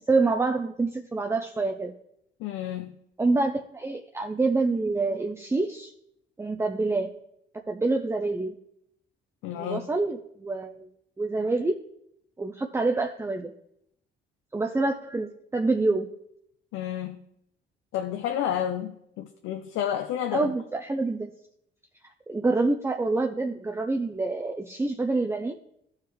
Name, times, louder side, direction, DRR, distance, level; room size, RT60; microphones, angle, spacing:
voice 1, 0.1-1.9 3.2-5.9 6.4-7.1 7.7-8.6 9.5-10.9 11.2-11.8 12.4-13.5 14.5-16.1 20.3-21.3 22.3-25.5, right 3 dB, 15° right, 4 dB, 0.6 m, -26 dB
voice 2, 2.4-2.9 9.4-9.9 16.7-17.2 17.9-20.5, left 10 dB, 90° left, 5 dB, 0.6 m, -30 dB
14.5 x 4.9 x 3.1 m, 0.76 s
cardioid pair, 90°, 20 cm